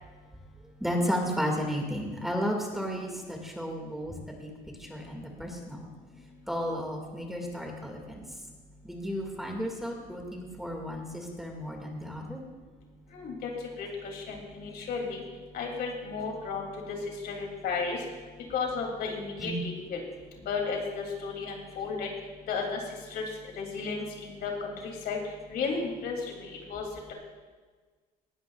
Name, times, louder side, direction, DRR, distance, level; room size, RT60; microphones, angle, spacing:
voice 1, 0.8-4.5 4.8-5.9 6.5-8.3 8.8-12.4 19.4-19.6, equal, ahead, 0 dB, 2.2 m, -33 dB
voice 2, 13.1-13.5 13.8-15.2 15.5-17.0 17.2-18.0 18.5-20.0 20.5-22.1 22.5-22.8 23.1-23.2 23.6-25.2 25.5-26.8, left 5 dB, 70° left, 1 dB, 3.0 m, -33 dB
18.5 x 13.0 x 2.5 m, 1.4 s
cardioid pair, 110°, 17 cm